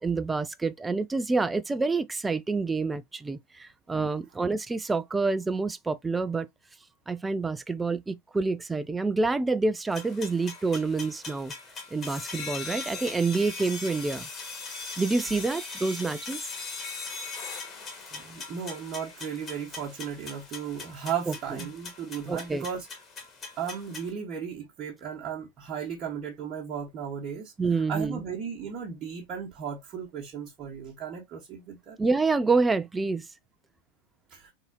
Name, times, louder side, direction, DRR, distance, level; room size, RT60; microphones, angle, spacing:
voice 1, 0.0-6.5 7.1-11.5 11.9-14.3 15.0-16.4 21.3-21.4 22.3-22.7 27.6-28.2 32.0-33.3, right 3 dB, 10° right, 0.3 m, -27 dB
sound 1, 9.9-24.1, left 4 dB, 25° left, 1.7 m, -40 dB
voice 2, 18.1-22.9 23.6-32.0 34.3-34.5, right 7 dB, 30° right, 1.3 m, -36 dB
4.0 x 3.7 x 2.8 m
figure-of-eight pair, 90°, 0 cm